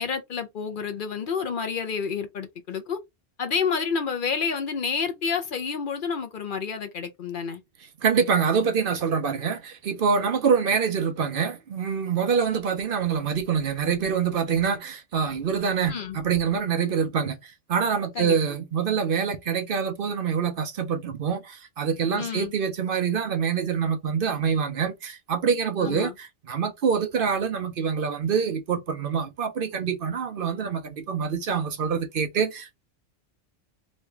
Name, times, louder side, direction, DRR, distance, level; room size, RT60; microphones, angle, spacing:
voice 1, 0.0-3.0 3.4-7.6 15.9-16.2 18.1-18.4 22.1-22.5 25.8-26.1, left 6 dB, 55° left, 0.7 m, -29 dB
voice 2, 8.0-32.8, right 6 dB, 60° right, 0.8 m, -25 dB
3.1 x 2.9 x 3.3 m
omnidirectional pair, 1.1 m